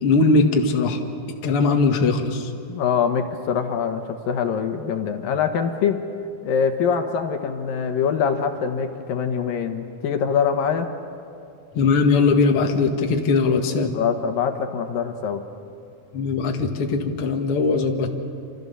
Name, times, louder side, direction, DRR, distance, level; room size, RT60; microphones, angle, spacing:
voice 1, 0.0-1.0 1.4-2.5 11.7-13.9 16.1-18.1, left 4 dB, 45° left, 2 dB, 2.3 m, -20 dB
voice 2, 2.7-6.0 6.4-10.9 13.9-15.4, left 7 dB, 75° left, 6 dB, 3.0 m, -24 dB
28.0 x 27.5 x 6.9 m, 2.5 s
omnidirectional pair, 4.1 m